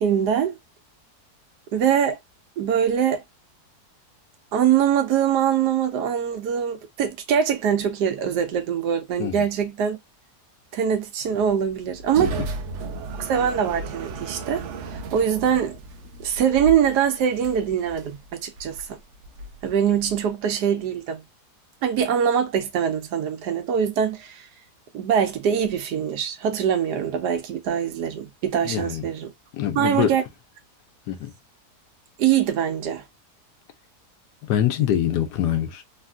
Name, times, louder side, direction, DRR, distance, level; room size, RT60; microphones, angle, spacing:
voice 1, 0.0-0.5 1.7-2.2 2.6-3.2 4.5-10.0 10.7-12.4 13.2-14.6 14.9-15.8 16.2-19.0 19.6-21.2 21.8-24.5 24.9-29.3 29.7-30.2 32.2-33.0, right 8 dB, 85° right, 1.3 m, -23 dB
sound 1, 11.2-20.3, right 3 dB, 65° right, 0.7 m, -36 dB
voice 2, 28.6-29.0 29.5-30.1 31.1-31.3 34.4-35.8, left 10 dB, 85° left, 1.3 m, -24 dB
3.4 x 2.5 x 2.2 m
omnidirectional pair, 1.7 m